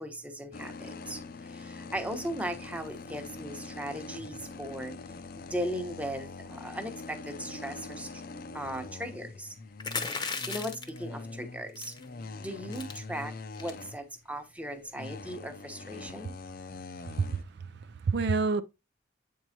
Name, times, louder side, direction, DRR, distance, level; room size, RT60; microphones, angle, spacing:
voice 1, 0.0-4.9 5.4-8.1 8.5-9.5 10.1-11.9 12.4-16.3, equal, 5° right, 0.9 m, -38 dB
sound 1, 0.5-14.4 14.8-17.4, left 3 dB, 50° left, 0.5 m, -43 dB
sound 2, 9.8-11.0 11.8-12.0 12.4-12.5 12.7-13.0 13.5-13.8, left 4 dB, 20° left, 0.8 m, -35 dB
voice 2, 17.0-18.6, right 4 dB, 60° right, 0.4 m, -29 dB
8.0 x 4.6 x 2.8 m
head